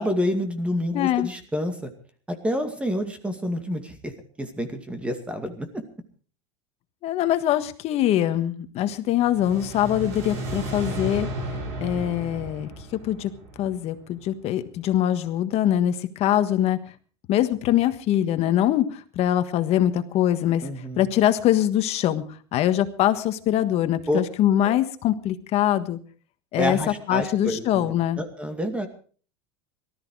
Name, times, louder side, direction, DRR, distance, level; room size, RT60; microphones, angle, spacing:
voice 1, 0.0-1.9 2.3-4.1 4.4-5.8 20.6-21.1 24.1-24.2 24.6-24.8 26.6-28.9, equal, 10° right, 8 dB, 2.2 m, -28 dB
voice 2, 0.9-1.3 7.0-11.3 11.8-12.7 13.0-16.8 17.3-20.7 21.0-22.2 22.5-26.0 26.5-26.8 27.1-28.2, left 12 dB, 45° left, 10 dB, 1.5 m, -23 dB
sound 1, 9.2-14.3, right 1 dB, 55° right, 6.2 m, -34 dB
18.5 x 13.5 x 4.8 m, 0.42 s
supercardioid pair, 135°, 15 cm